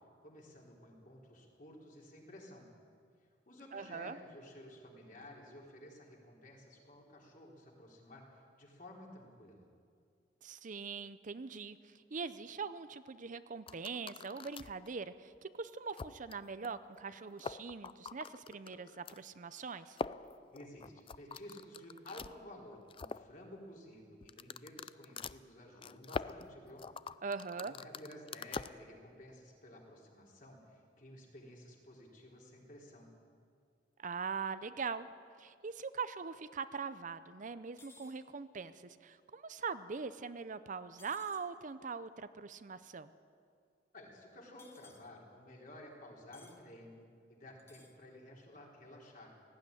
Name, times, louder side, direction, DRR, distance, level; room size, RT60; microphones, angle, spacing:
voice 1, 0.2-2.7 3.5-9.7 20.5-26.9 27.7-33.1 43.9-47.0 47.3-49.3, left 1 dB, 50° left, -1 dB, 4.0 m, -53 dB
voice 2, 3.7-4.2 10.4-20.0 27.2-27.7 34.0-35.1 35.4-43.1, right 5 dB, 45° right, 13 dB, 0.6 m, -42 dB
sound 1, 13.7-14.9 15.3-15.4 15.9-16.4 16.6-16.7 17.0-17.1 17.3-19.2 19.9-22.3 22.7-23.3 24.2-28.7, left 4 dB, 30° left, 0.4 m, -44 dB
sound 2, 37.8-38.2 41.0-41.5 44.6-45.0 46.3-46.6 47.6-48.0, left 4 dB, 15° left, 1.4 m, -60 dB
18.0 x 15.0 x 9.9 m, 2.2 s
head